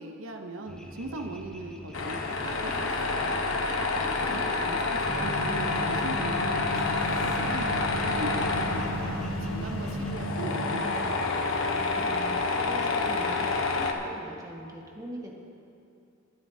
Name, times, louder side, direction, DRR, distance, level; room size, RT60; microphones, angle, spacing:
voice 1, 0.0-3.4 4.0-7.7 8.0-11.1, right 1 dB, 90° right, 4 dB, 0.9 m, -39 dB
sound 1, 0.7-10.1, equal, 5° left, 1.0 m, -43 dB
Tools, 1.9-13.9, left 3 dB, 90° left, 1.0 m, -29 dB
voice 2, 3.9-4.5 11.8-12.1 12.5-15.3, right 1 dB, 20° right, -1 dB, 1.4 m, -42 dB
sound 2, 5.0-10.8, right 1 dB, 45° right, 2.2 m, -35 dB
22.5 x 9.6 x 2.7 m, 2.6 s
head